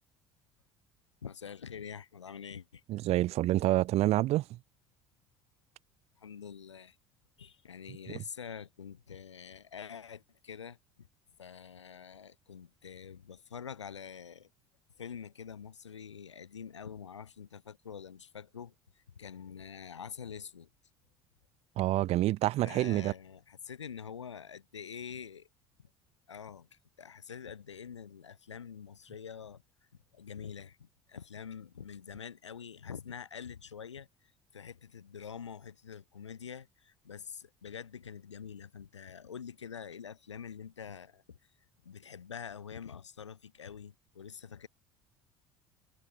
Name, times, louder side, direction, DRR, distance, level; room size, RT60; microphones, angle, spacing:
voice 1, 1.2-2.8 6.2-7.0 7.4-11.1 11.4-14.5 15.0-20.7 22.6-25.5 26.3-29.6 30.1-34.1 34.5-41.4 41.8-44.7, left 7 dB, 90° left, 1.3 m, -46 dB
voice 2, 2.9-4.6 21.8-23.1, right 16 dB, 45° right, 0.4 m, -27 dB
figure-of-eight pair, 65°, 15 cm